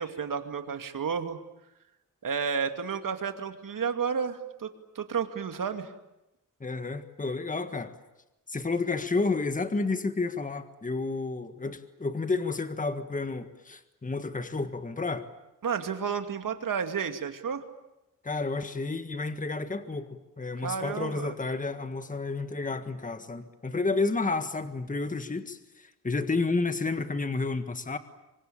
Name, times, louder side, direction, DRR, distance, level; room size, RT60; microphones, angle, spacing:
voice 1, 0.0-1.4 2.2-4.7 5.0-5.9 15.6-17.6 20.6-21.3, right 6 dB, 75° right, 7 dB, 2.5 m, -31 dB
voice 2, 6.6-7.9 8.5-15.3 18.2-28.0, left 3 dB, 25° left, 9 dB, 1.7 m, -31 dB
27.0 x 24.5 x 8.8 m, 0.93 s
wide cardioid pair, 115°, 33 cm